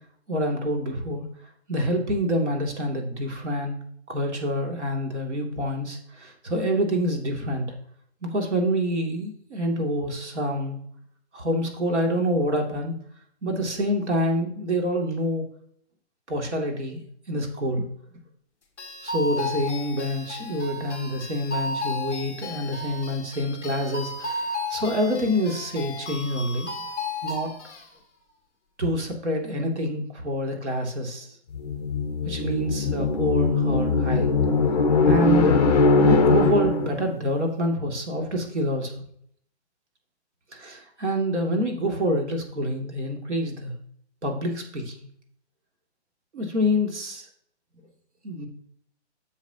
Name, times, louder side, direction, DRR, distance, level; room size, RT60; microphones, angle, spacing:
voice 1, 0.3-1.2 1.7-3.8 4.1-7.7 8.2-10.8 11.3-13.0 13.4-15.4 16.3-17.0 17.3-17.9 19.0-26.7 27.2-27.5 28.8-31.3 32.2-34.3 35.0-35.7 36.0-39.0 40.5-43.8 44.2-45.1 46.3-47.3 48.2-48.5, equal, 85° right, 3 dB, 2.7 m, -27 dB
sound 1, 18.8-27.9, left 2 dB, 5° left, 1.4 m, -34 dB
sound 2, 31.5-37.1, left 3 dB, 35° left, 0.7 m, -21 dB
10.5 x 7.2 x 2.9 m, 0.64 s
hypercardioid pair, 180°, 34 cm